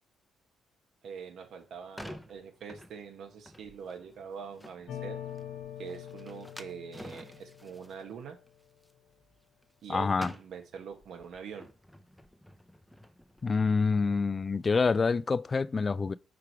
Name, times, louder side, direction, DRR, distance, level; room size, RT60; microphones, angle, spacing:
voice 1, 1.0-5.2 5.8-8.4 9.8-11.7, right 7 dB, 70° right, 1.4 m, -44 dB
sound 1, 1.5-9.9 10.1-13.8, equal, 5° left, 0.7 m, -50 dB
sound 2, 4.9-8.3, left 10 dB, 70° left, 1.2 m, -44 dB
voice 2, 9.9-10.3 13.4-16.1, left 4 dB, 35° left, 0.3 m, -27 dB
5.0 x 4.6 x 4.8 m
cardioid pair, 90°, 0 cm